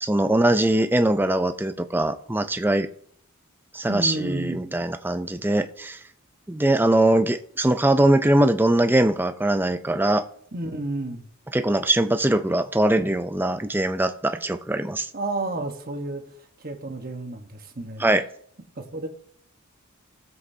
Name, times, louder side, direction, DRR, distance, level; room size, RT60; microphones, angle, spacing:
voice 1, 0.0-2.9 3.7-6.0 6.5-10.3 11.5-15.1 18.0-18.2, right 1 dB, 10° right, 9 dB, 0.5 m, -21 dB
voice 2, 3.9-4.6 10.5-11.2 15.1-16.2 16.6-18.0 18.8-19.1, right 2 dB, 40° right, 3 dB, 1.2 m, -31 dB
18.5 x 7.8 x 2.8 m, 0.63 s
head